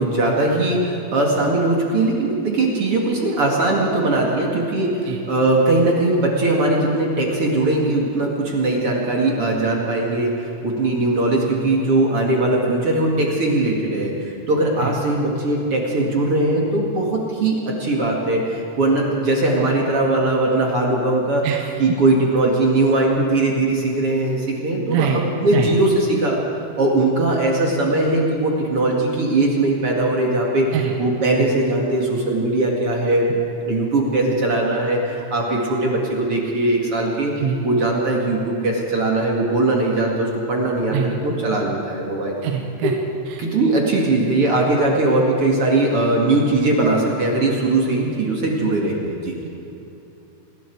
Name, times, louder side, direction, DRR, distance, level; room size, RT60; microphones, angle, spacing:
voice 1, 0.0-21.5 21.8-26.4 26.8-33.3 33.6-37.3 37.6-42.4 42.8-42.9 43.4-49.3, right 2 dB, 45° right, -2 dB, 1.8 m, -20 dB
voice 2, 24.9-25.2 25.5-25.7 30.7-30.9 37.4-37.7 40.9-41.1 42.4-42.9 49.4-49.5, right 8 dB, 80° right, 2 dB, 3.6 m, -23 dB
27.5 x 20.5 x 4.7 m, 2.9 s
omnidirectional pair, 5.7 m